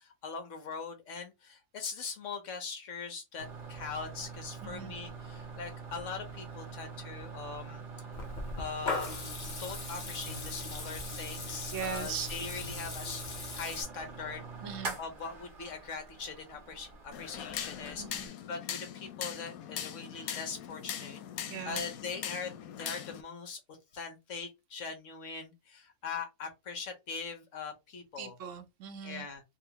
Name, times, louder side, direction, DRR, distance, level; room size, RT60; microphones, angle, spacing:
voice 1, 0.0-7.8 8.6-14.4 15.0-28.4 29.0-29.4, left 5 dB, 65° left, 1.3 m, -41 dB
sound 1, 3.4-18.3, right 4 dB, 45° right, 0.9 m, -45 dB
voice 2, 4.6-4.9 11.7-12.4 14.6-15.0 18.0-18.3 21.5-21.8 28.2-29.3, right 7 dB, 70° right, 1.0 m, -39 dB
Water tap faucet / Liquid, 8.1-13.8, left 3 dB, 40° left, 0.8 m, -39 dB
sound 2, 17.1-23.2, left 9 dB, 90° left, 1.1 m, -40 dB
3.8 x 2.2 x 2.9 m
omnidirectional pair, 1.5 m